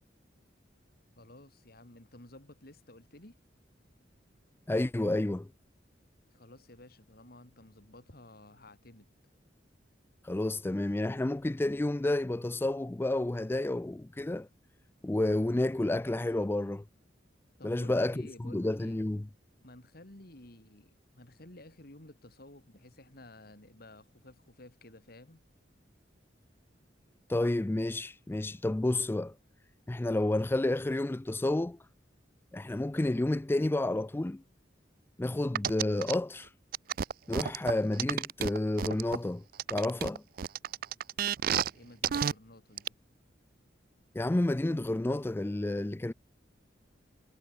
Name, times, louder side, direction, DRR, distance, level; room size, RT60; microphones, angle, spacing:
voice 1, 1.2-3.4 6.3-9.1 17.6-19.0 19.6-25.4 41.4-42.9, left 1 dB, 55° left, 3.2 m, -53 dB
voice 2, 4.7-5.5 10.2-14.5 15.0-16.8 17.6-19.3 27.3-29.4 29.9-31.8 32.5-34.4 35.2-36.5 37.3-39.4 39.7-40.2 44.1-46.1, left 1 dB, 10° left, 0.3 m, -30 dB
sound 1, 35.6-36.1 36.7-39.2 39.6-41.7 42.0-42.3 42.8-42.9, right 8 dB, 50° right, 0.4 m, -30 dB
head